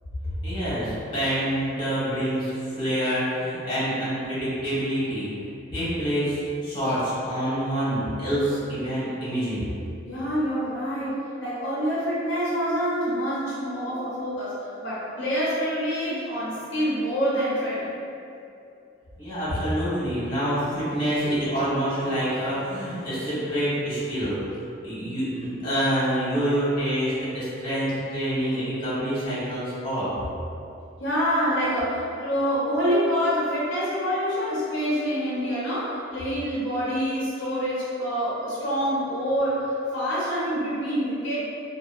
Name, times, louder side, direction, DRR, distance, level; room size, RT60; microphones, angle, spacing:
voice 1, 0.2-5.3 5.7-9.7 19.2-30.1, equal, 25° left, -12 dB, 1.1 m, -27 dB
voice 2, 10.0-18.0 31.0-41.4, equal, 75° left, -9 dB, 0.7 m, -26 dB
2.8 x 2.3 x 2.4 m, 2.6 s
head